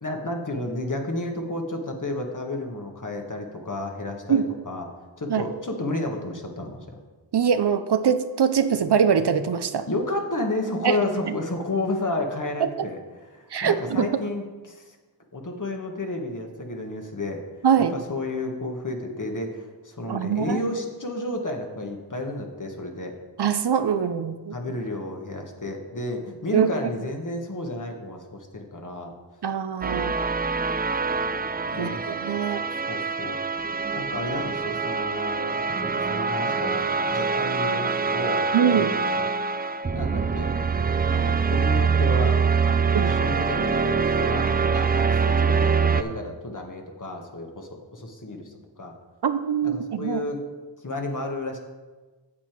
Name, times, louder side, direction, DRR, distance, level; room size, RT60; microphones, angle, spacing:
voice 1, 0.0-4.9 5.2-7.0 9.9-13.0 13.3-15.0 15.3-17.4 17.8-23.2 24.5-29.1 29.8-30.1 30.5-30.9 31.7-32.0 32.7-33.4 33.9-36.8 37.1-39.2 39.9-40.5 41.1-48.9 49.6-50.4 50.8-51.6, left 2 dB, 45° left, 2 dB, 1.5 m, -32 dB
voice 2, 7.3-9.9 10.8-11.0 12.6-12.9 13.5-14.1 17.6-18.0 20.1-20.6 23.4-24.6 26.5-26.7 29.4-30.2 31.8-32.6 38.5-38.9 42.9-43.1 49.2-50.2, right 7 dB, 65° right, 10 dB, 0.6 m, -23 dB
sound 1, 29.8-46.0, right 5 dB, 20° right, 0.4 m, -24 dB
8.5 x 7.5 x 4.6 m, 1.3 s
cardioid pair, 40°, 44 cm